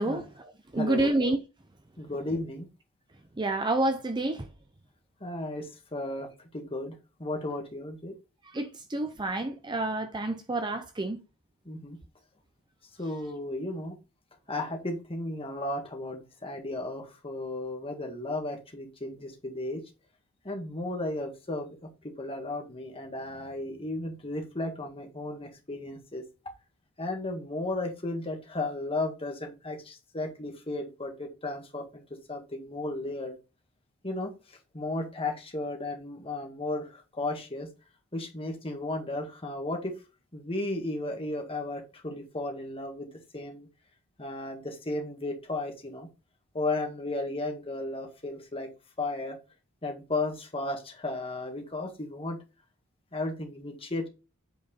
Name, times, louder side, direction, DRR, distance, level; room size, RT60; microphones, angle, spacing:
voice 1, 0.0-1.4 3.4-4.5 8.5-11.2, right 2 dB, 20° right, 0.6 m, -29 dB
voice 2, 0.8-1.1 2.0-2.7 5.2-8.1 11.7-12.0 13.0-14.0 14.5-19.8 20.5-26.2 27.0-32.0 32.3-33.4 34.0-34.3 34.7-37.7 38.1-40.0 40.3-43.1 43.3-43.7 44.2-46.1 46.5-48.7 49.0-49.4 49.8-52.4 53.1-54.1, left 2 dB, 25° left, 1.7 m, -34 dB
8.3 x 4.6 x 4.2 m
head